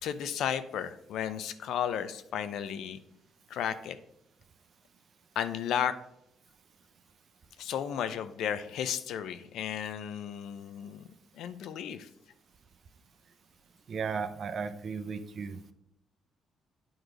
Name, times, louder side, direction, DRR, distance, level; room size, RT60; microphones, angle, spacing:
voice 1, 0.0-3.0 3.5-4.0 5.4-6.0 7.6-11.1 11.3-12.1, left 9 dB, 80° left, 12 dB, 0.5 m, -34 dB
voice 2, 13.9-15.7, right 5 dB, 55° right, 10 dB, 0.6 m, -35 dB
8.9 x 3.1 x 5.0 m, 0.77 s
cardioid pair, 90°, 0 cm